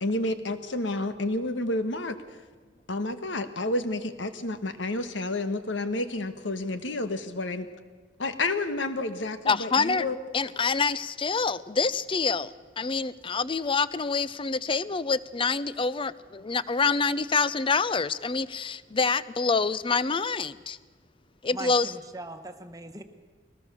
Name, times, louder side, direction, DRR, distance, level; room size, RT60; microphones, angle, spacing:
voice 1, 0.0-2.2 2.9-7.7 8.2-10.2, left 2 dB, 75° left, 10 dB, 1.4 m, -30 dB
voice 2, 9.5-10.0 10.3-20.8 21.4-21.9, left 4 dB, 30° left, 17 dB, 0.5 m, -26 dB
voice 3, 21.5-23.0, right 2 dB, 20° right, 7 dB, 1.3 m, -40 dB
22.0 x 18.5 x 6.9 m, 1.4 s
head